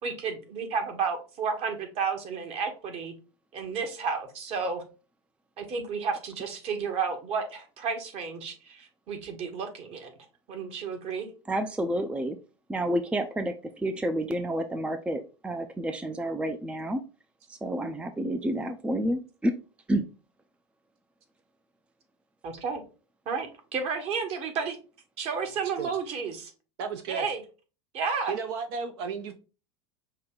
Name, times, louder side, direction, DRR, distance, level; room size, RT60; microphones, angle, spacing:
voice 1, 0.0-3.1 3.5-4.8 5.6-10.1 10.5-11.3 22.4-22.8 23.3-24.8 25.2-26.5 27.1-27.4 27.9-28.3, right 5 dB, 45° right, 6 dB, 1.3 m, -32 dB
voice 2, 11.5-12.4 12.7-17.0 17.5-19.5 19.9-20.0, right 1 dB, 10° right, 8 dB, 0.4 m, -29 dB
voice 3, 26.8-27.3 28.1-29.4, right 5 dB, 65° right, 6 dB, 0.7 m, -34 dB
5.4 x 2.2 x 3.7 m, 0.33 s
hypercardioid pair, 90°, 15 cm